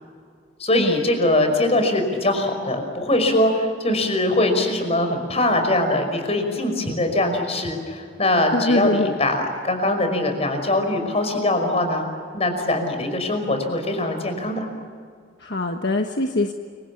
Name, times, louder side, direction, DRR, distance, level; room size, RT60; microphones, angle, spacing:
voice 1, 0.6-14.7, left 1 dB, 35° left, 6 dB, 5.4 m, -22 dB
voice 2, 8.5-9.2 15.4-16.5, left 2 dB, 65° left, 4 dB, 1.4 m, -23 dB
29.0 x 25.0 x 7.3 m, 2.1 s
head